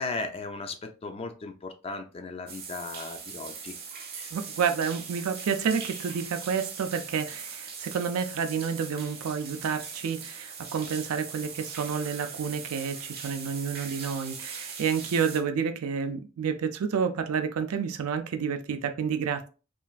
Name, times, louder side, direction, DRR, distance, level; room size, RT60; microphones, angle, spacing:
voice 1, 0.0-3.8 4.1-4.3, left 3 dB, 25° left, 0.3 m, -36 dB
sound 1, 2.5-15.4, right 5 dB, 45° right, 0.7 m, -40 dB
voice 2, 4.3-19.5, right 6 dB, 75° right, 0.4 m, -29 dB
3.1 x 2.5 x 2.3 m
head